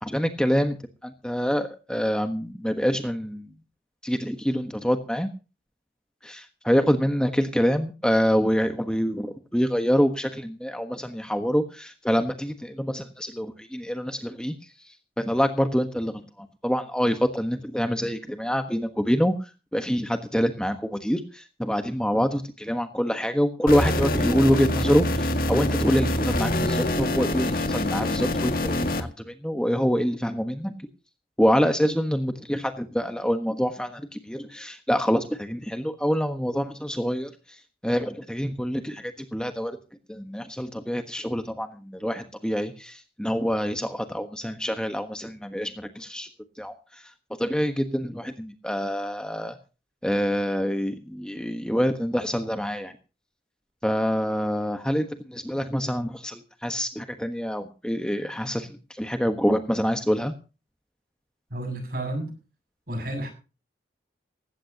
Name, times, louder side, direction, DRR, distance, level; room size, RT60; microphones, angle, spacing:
voice 1, 0.0-0.7 1.0-3.5 4.0-5.3 6.2-14.5 14.8-30.7 31.4-39.8 40.1-46.3 46.6-47.0 47.4-49.6 50.0-52.9 53.8-60.3, equal, 5° left, 1.3 m, -26 dB
sound 1, 23.7-29.0, left 1 dB, 55° left, 2.0 m, -25 dB
voice 2, 61.5-62.3 62.9-63.3, right 1 dB, 55° right, 7.4 m, -31 dB
18.5 x 16.5 x 2.9 m
head